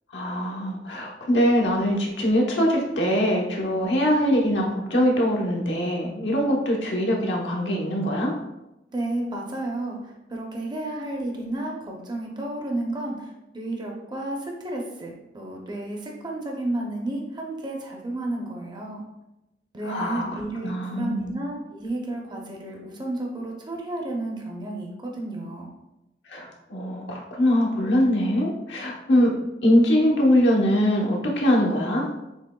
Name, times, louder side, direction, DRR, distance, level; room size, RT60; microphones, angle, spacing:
voice 1, 0.1-8.3 19.8-20.3 20.6-21.3 26.3-29.3 29.6-32.1, equal, 85° left, -2 dB, 1.0 m, -22 dB
voice 2, 8.9-19.1 19.7-25.7, right 2 dB, 25° right, 0 dB, 0.6 m, -32 dB
6.5 x 3.0 x 2.2 m, 0.94 s
head